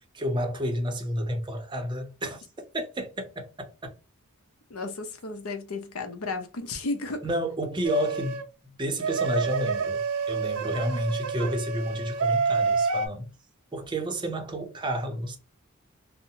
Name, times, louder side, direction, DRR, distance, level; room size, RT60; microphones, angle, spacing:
voice 1, 0.1-2.4 2.7-3.7 7.2-8.4 8.8-10.0 10.3-13.3 13.7-15.4, equal, 20° right, 0.6 m, -30 dB
voice 2, 4.7-7.3, left 3 dB, 75° left, 0.6 m, -33 dB
sound 1, 7.8-8.4 9.0-13.1, right 5 dB, 80° right, 0.5 m, -28 dB
2.7 x 2.1 x 2.6 m
head